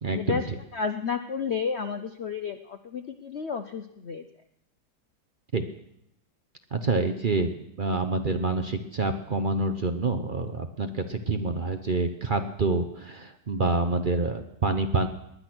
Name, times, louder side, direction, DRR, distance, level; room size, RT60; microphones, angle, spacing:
voice 1, 0.0-0.6 5.5-5.6 6.7-15.1, right 3 dB, 50° right, 7 dB, 0.6 m, -27 dB
voice 2, 0.7-4.2, left 6 dB, 70° left, 8 dB, 0.6 m, -31 dB
19.5 x 10.5 x 6.1 m, 0.79 s
omnidirectional pair, 2.0 m